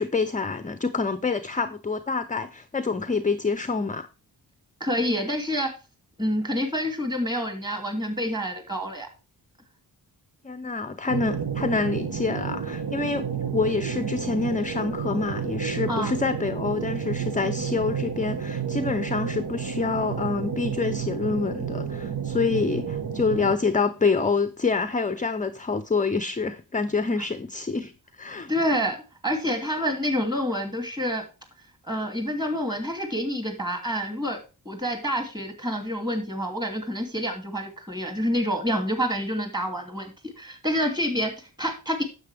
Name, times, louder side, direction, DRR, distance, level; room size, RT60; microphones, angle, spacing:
voice 1, 0.0-4.1 10.4-13.3 13.5-28.5, left 4 dB, 20° left, 0.6 m, -27 dB
voice 2, 4.8-5.7 6.2-9.1 15.9-16.1 28.5-31.2 31.9-34.4 34.6-42.0, equal, 10° right, 2.6 m, -28 dB
sound 1, 11.1-23.6, right 6 dB, 65° right, 1.3 m, -31 dB
9.7 x 7.5 x 3.4 m
wide cardioid pair, 110°, 40 cm